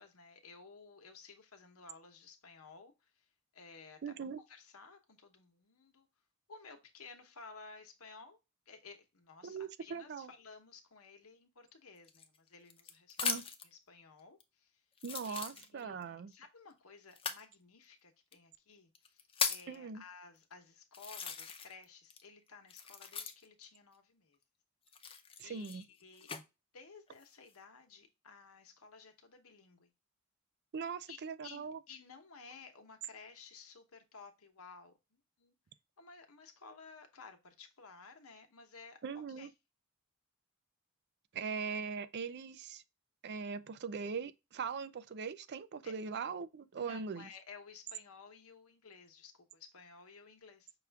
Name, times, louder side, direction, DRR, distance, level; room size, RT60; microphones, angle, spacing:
voice 1, 0.0-3.3 3.5-4.1 4.5-6.1 6.5-8.4 8.7-14.8 15.3-24.4 25.1-26.3 26.7-29.9 31.1-35.5 36.0-39.5 45.8-45.9 46.8-50.7, left 4 dB, 85° left, 1.0 m, -55 dB
voice 2, 4.0-4.4 9.4-10.3 13.2-13.4 15.0-16.3 19.7-20.0 25.4-25.9 30.7-31.8 39.0-39.5 41.3-42.8 43.2-47.3, right 5 dB, 50° right, 0.4 m, -41 dB
sound 1, 12.0-13.7 14.4-14.5 15.0-16.0 17.1-17.5 18.3-18.4 19.0-19.8 20.4-20.5 20.9-21.8 22.1-23.6 24.9-26.4 27.1-27.6, left 6 dB, 25° left, 0.6 m, -39 dB
5.9 x 2.4 x 3.3 m
head